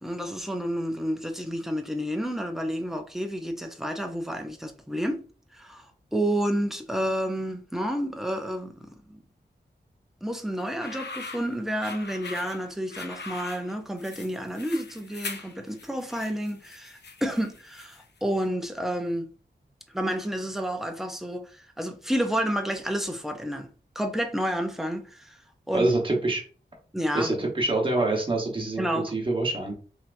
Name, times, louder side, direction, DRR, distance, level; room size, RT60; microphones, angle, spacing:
voice 1, 0.0-5.2 5.5-9.2 10.2-19.3 19.9-23.7 24.0-25.4 25.7-25.9 26.9-27.3 28.8-29.1, equal, ahead, 0.5 m, -30 dB
sound 1, 10.6-18.2, left 4 dB, 65° left, 0.6 m, -41 dB
voice 2, 25.7-26.4 27.1-29.7, right 2 dB, 25° right, 1.1 m, -26 dB
3.3 x 2.8 x 2.5 m
wide cardioid pair, 90°, 19 cm